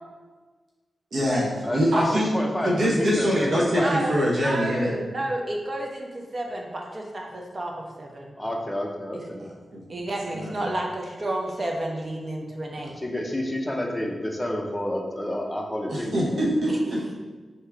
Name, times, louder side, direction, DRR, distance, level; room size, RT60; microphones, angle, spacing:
voice 1, 1.1-2.3 2.6-4.9 9.4-9.8 10.3-10.7 12.8-12.9 15.9-17.2, equal, 70° right, -5 dB, 1.0 m, -24 dB
voice 2, 1.6-3.9 8.4-9.4 13.0-16.4, left 1 dB, 10° left, 0 dB, 0.6 m, -29 dB
voice 3, 3.8-8.3 9.1-9.2 9.9-12.9 16.7-16.8, right 1 dB, 40° right, 0 dB, 0.7 m, -31 dB
3.5 x 2.8 x 4.6 m, 1.3 s
wide cardioid pair, 95°, 0 cm